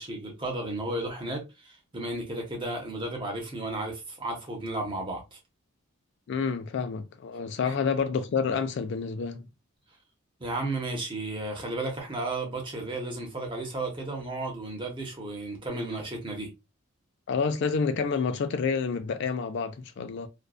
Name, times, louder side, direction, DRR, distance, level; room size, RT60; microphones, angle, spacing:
voice 1, 0.0-5.4 7.6-7.7 10.4-16.5, right 2 dB, 25° right, 0.7 m, -33 dB
voice 2, 6.3-9.5 17.3-20.3, left 5 dB, 55° left, 0.3 m, -29 dB
2.5 x 2.2 x 2.3 m
head